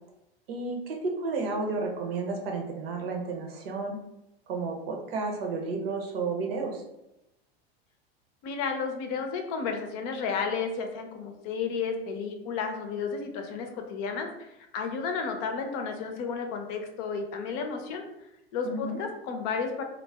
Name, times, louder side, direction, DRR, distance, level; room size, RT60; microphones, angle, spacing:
voice 1, 0.5-4.0 4.5-6.8 18.6-19.0, right 3 dB, 70° right, 1 dB, 0.8 m, -32 dB
voice 2, 8.4-18.0 18.5-19.8, left 5 dB, 50° left, 4 dB, 0.6 m, -32 dB
2.4 x 2.1 x 3.3 m, 0.88 s
hypercardioid pair, 95°, 31 cm